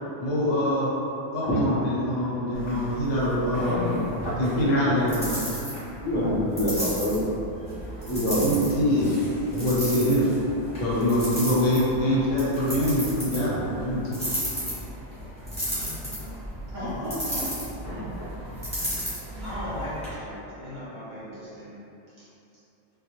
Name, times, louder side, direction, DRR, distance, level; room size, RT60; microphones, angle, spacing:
voice 1, 0.2-0.9 1.3-3.9 4.4-5.4 8.2-9.1 9.5-10.3 10.8-14.2, equal, 85° left, -8 dB, 1.1 m, -24 dB
sound 1, 2.5-20.1, equal, 5° left, 0.9 m, -34 dB
voice 2, 6.0-7.2 8.0-8.4 17.8-18.3 19.3-19.4, left 1 dB, 30° left, -10 dB, 0.5 m, -26 dB
voice 3, 15.7-16.4 16.7-17.5 19.4-21.8, equal, 50° right, -11 dB, 0.7 m, -36 dB
2.2 x 2.1 x 2.8 m, 2.8 s
omnidirectional pair, 1.2 m